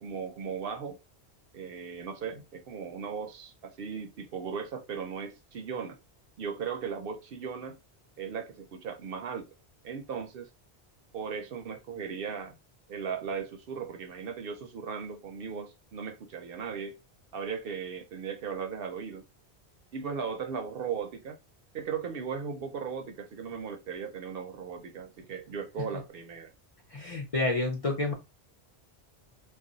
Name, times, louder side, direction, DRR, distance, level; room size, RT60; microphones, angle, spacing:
voice 1, 0.0-1.0 1.5-6.0 6.4-7.8 8.2-9.5 9.8-10.5 11.1-12.5 12.9-17.0 17.3-19.2 19.9-21.4 21.7-26.5, right 6 dB, 65° right, 0.7 m, -37 dB
voice 2, 26.9-28.1, left 2 dB, 40° left, 0.6 m, -29 dB
2.4 x 2.3 x 3.8 m
omnidirectional pair, 1.1 m